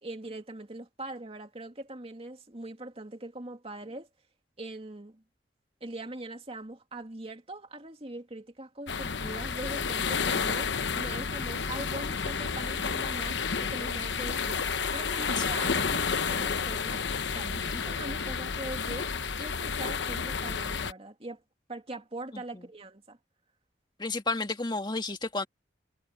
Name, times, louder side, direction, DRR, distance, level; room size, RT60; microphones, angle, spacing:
voice 1, 0.0-4.1 4.6-5.2 5.8-14.7 14.9-17.1 17.3-19.1 19.4-21.4 21.7-23.2, right 2 dB, 35° right, 2.4 m, -41 dB
sound 1, 8.9-20.9, left 5 dB, 80° left, 1.0 m, -31 dB
voice 2, 24.0-25.5, left 3 dB, 25° left, 1.8 m, -31 dB
head